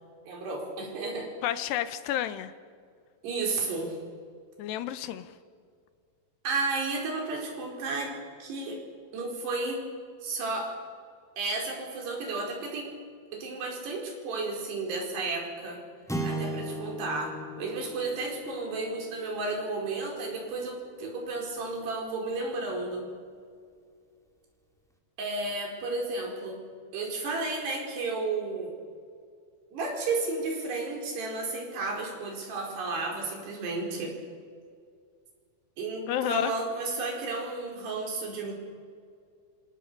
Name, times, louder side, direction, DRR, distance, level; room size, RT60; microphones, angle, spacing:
voice 1, 0.3-1.3 3.2-3.9 6.4-8.1 8.4-8.8 9.1-9.9 10.2-10.7 11.4-12.9 13.3-15.8 16.2-23.1 25.2-26.6 26.9-28.7 29.7-34.2 35.8-38.5, right 3 dB, 75° right, 0 dB, 6.5 m, -32 dB
voice 2, 1.4-2.5 4.6-5.4 36.1-36.5, left 11 dB, 80° left, 12 dB, 3.1 m, -30 dB
sound 1, 16.1-20.6, right 1 dB, ahead, 0.9 m, -37 dB
27.5 x 26.5 x 6.9 m, 2.2 s
omnidirectional pair, 4.8 m